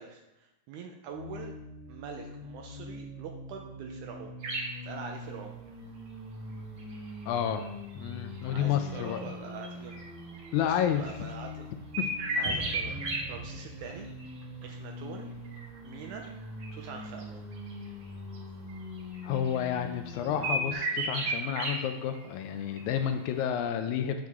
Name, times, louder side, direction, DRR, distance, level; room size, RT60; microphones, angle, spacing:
voice 1, 0.0-1.5 1.9-4.4 4.8-5.6 8.4-10.0 10.6-11.7 12.4-14.1 14.6-15.3 15.8-16.3 16.7-17.5, right 6 dB, 80° right, 2 dB, 1.9 m, -44 dB
sound 1, 1.1-20.7, left 1 dB, 20° right, 0.4 m, -43 dB
sound 2, 4.4-4.8 5.8-5.9 6.8-11.5 11.9-13.2 13.5-13.9 14.2-14.6 15.4-17.2 17.5-18.1 18.3-18.4 18.7-19.8 20.1-21.7 22.1-22.2 22.5-23.0 23.3-23.4, right 2 dB, 50° right, 2.1 m, -35 dB
voice 2, 7.3-7.7 8.0-9.2 10.5-11.0 12.0-12.1 19.2-24.3, left 9 dB, 80° left, 8 dB, 1.7 m, -30 dB
sound 3, 12.4-15.6, equal, 45° left, 1.4 m, -44 dB
7.4 x 6.4 x 3.6 m, 0.93 s
omnidirectional pair, 3.9 m